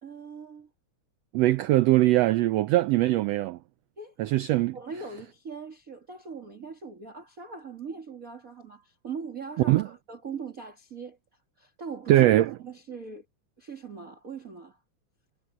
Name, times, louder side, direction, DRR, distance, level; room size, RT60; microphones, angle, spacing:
voice 1, 0.0-0.7 4.0-4.2 4.7-11.2 11.6-12.3 12.6-13.3 13.6-14.8, right 5 dB, 30° right, 2.1 m, -40 dB
voice 2, 1.3-3.6 4.2-4.8 9.6-9.9 12.1-12.5, right 16 dB, 90° right, 1.4 m, -21 dB
omnidirectional pair, 3.5 m